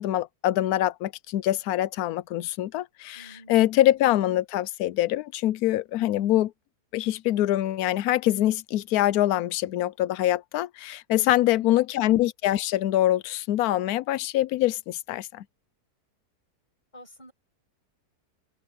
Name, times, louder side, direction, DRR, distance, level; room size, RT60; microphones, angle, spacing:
voice 1, 0.0-6.5 6.9-15.4, left 14 dB, 75° left, 1.0 m, -24 dB
voice 2, 3.1-3.7 11.1-11.8 16.9-17.3, equal, 25° left, 7.7 m, -49 dB
open air
omnidirectional pair, 1.7 m